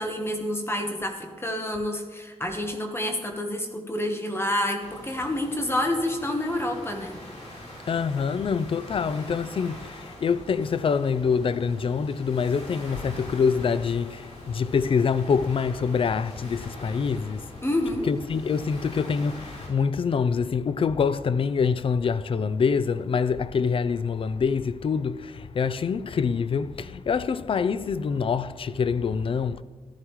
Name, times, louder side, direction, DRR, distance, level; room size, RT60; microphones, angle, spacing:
voice 1, 0.0-7.2 17.6-18.1, left 1 dB, 20° left, 1.1 m, -28 dB
sound 1, 4.8-19.7, left 1 dB, 85° left, 4.1 m, -43 dB
voice 2, 7.9-17.5 18.0-29.6, left 6 dB, 50° left, 0.4 m, -25 dB
14.5 x 12.5 x 3.1 m
wide cardioid pair, 100°, 12 cm